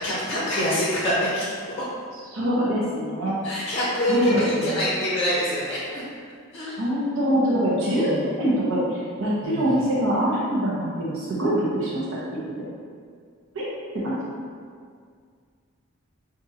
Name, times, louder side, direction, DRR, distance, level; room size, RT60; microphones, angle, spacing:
voice 1, 0.0-1.8 3.4-6.0 6.5-6.8 7.8-8.3 9.4-9.9, left 1 dB, 25° left, -7 dB, 0.6 m, -26 dB
voice 2, 2.3-3.4 4.1-4.4 4.6-4.8 6.8-8.1 8.4-12.0 13.5-13.6 14.0-14.2, equal, 65° right, -8 dB, 0.9 m, -24 dB
5.3 x 2.5 x 2.7 m, 2.1 s
head